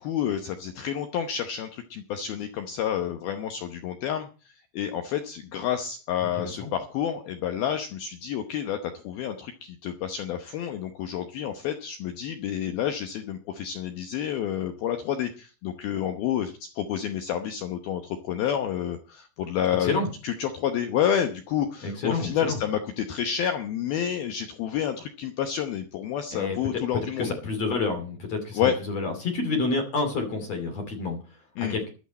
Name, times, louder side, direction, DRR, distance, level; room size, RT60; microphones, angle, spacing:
voice 1, 0.0-19.9 20.2-27.3 28.5-28.7 31.6-31.7, left 9 dB, 70° left, 6 dB, 2.5 m, -29 dB
voice 2, 6.4-6.7 19.8-20.1 21.8-22.6 26.3-26.8 27.2-31.9, left 3 dB, 40° left, 4 dB, 3.3 m, -29 dB
15.5 x 12.0 x 4.2 m, 0.35 s
omnidirectional pair, 5.2 m